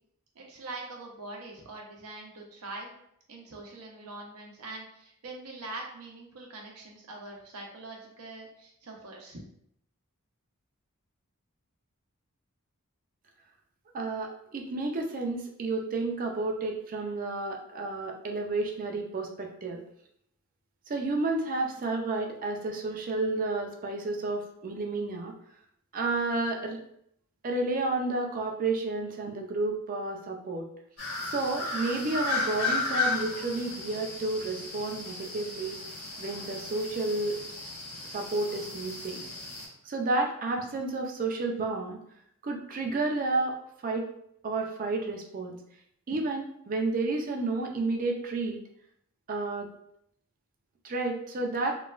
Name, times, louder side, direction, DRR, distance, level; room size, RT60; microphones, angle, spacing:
voice 1, 0.3-2.9 3.3-9.4, right 2 dB, 90° right, 0 dB, 0.7 m, -43 dB
voice 2, 13.9-19.8 20.9-25.3 25.9-26.8 27.4-30.7 31.3-35.8 36.2-37.4 38.1-39.2 39.8-42.0 42.4-43.6 43.8-44.1 44.4-45.6 46.1-48.6 49.3-49.7 50.8-51.7, right 3 dB, 40° right, 2 dB, 0.4 m, -31 dB
sound 1, 31.0-39.7, left 3 dB, 85° left, 1.5 m, -34 dB
3.0 x 2.2 x 2.4 m, 0.72 s
head